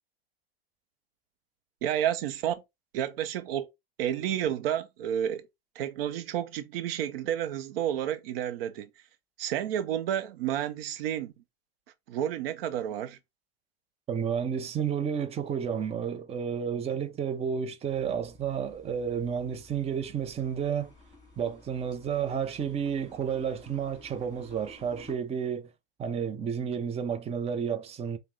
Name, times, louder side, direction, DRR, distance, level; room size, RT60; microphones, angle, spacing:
voice 1, 1.8-2.6 2.9-3.7 4.0-5.5 5.8-8.9 9.4-11.3 12.1-13.2, right 10 dB, 65° right, 0.6 m, -30 dB
voice 2, 14.1-20.9 21.4-25.7 26.0-28.2, right 7 dB, 20° right, 0.6 m, -31 dB
sound 1, 17.8-25.1, left 2 dB, 10° left, 2.0 m, -54 dB
5.2 x 2.2 x 3.2 m
hypercardioid pair, 105°, 31 cm